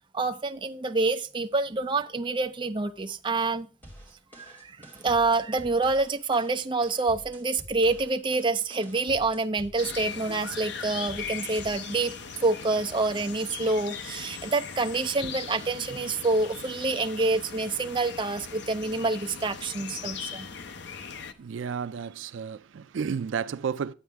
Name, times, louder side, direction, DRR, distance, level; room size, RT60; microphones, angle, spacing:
voice 1, 0.1-3.7 4.3-12.1 12.4-20.5, right 3 dB, 25° right, 0.6 m, -27 dB
sound 1, 3.8-11.8, equal, 10° left, 2.9 m, -49 dB
sound 2, 9.8-21.3, left 6 dB, 65° left, 0.7 m, -39 dB
voice 2, 21.4-23.9, right 6 dB, 80° right, 0.4 m, -32 dB
11.0 x 8.5 x 3.5 m
head